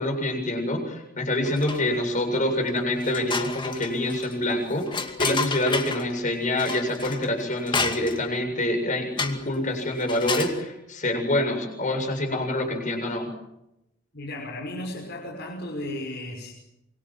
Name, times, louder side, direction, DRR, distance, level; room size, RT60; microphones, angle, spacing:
voice 1, 0.0-13.3, left 1 dB, 40° left, 3 dB, 7.5 m, -26 dB
sound 1, 1.4-2.1 2.5-2.6 3.0-6.1 6.6-8.4 9.2-9.5 10.0-10.6, left 4 dB, 25° left, 2.3 m, -31 dB
voice 2, 14.1-16.5, left 1 dB, 55° left, -1 dB, 5.8 m, -34 dB
26.5 x 24.0 x 7.7 m, 0.87 s
head